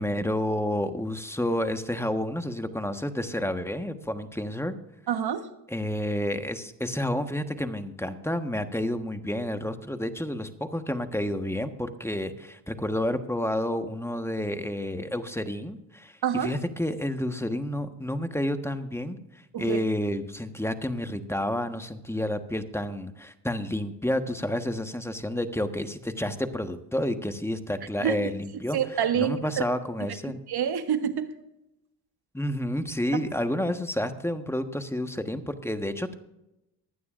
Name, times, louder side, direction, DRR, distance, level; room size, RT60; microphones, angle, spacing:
voice 1, 0.0-4.7 5.7-19.2 19.6-30.4 32.3-36.1, left 1 dB, 5° left, 8 dB, 1.3 m, -30 dB
voice 2, 5.1-5.5 16.2-16.6 19.5-19.8 28.0-28.2 28.7-29.6 30.5-31.3, right 9 dB, 60° right, 9 dB, 1.4 m, -27 dB
24.0 x 9.5 x 2.5 m, 0.89 s
supercardioid pair, 60°, 44 cm